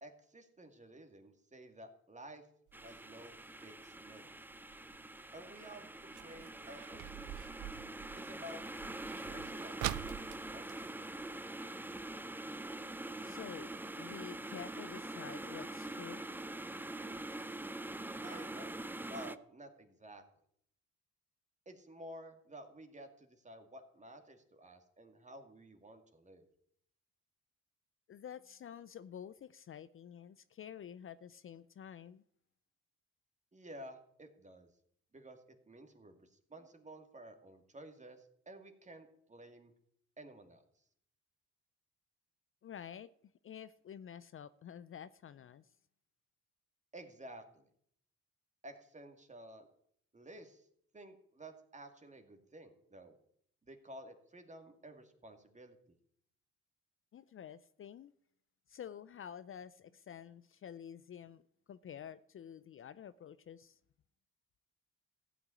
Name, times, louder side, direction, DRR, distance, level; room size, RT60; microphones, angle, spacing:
voice 1, 0.0-2.4 2.8-4.3 5.3-7.5 8.2-8.6 9.3-10.9 18.2-18.8 19.0-20.2 21.7-26.4 33.5-34.7 35.1-39.7 40.2-40.6 46.9-47.7 48.6-49.7 50.1-50.7 50.9-53.2 53.7-55.8, right 1 dB, 25° right, 2.3 m, -53 dB
sound 1, 2.7-19.4, right 2 dB, 5° right, 0.6 m, -44 dB
sound 2, 2.7-11.9 12.2-12.3 12.6-13.0 13.5-13.6 14.1-14.2 14.5-14.6 15.0-15.1, right 15 dB, 85° right, 0.6 m, -46 dB
voice 2, 13.2-16.3 28.1-32.2 42.6-43.1 43.4-45.7 57.1-58.1 58.7-61.4 61.7-63.8, left 9 dB, 45° left, 0.5 m, -49 dB
15.0 x 6.0 x 9.7 m
cardioid pair, 90°, 30 cm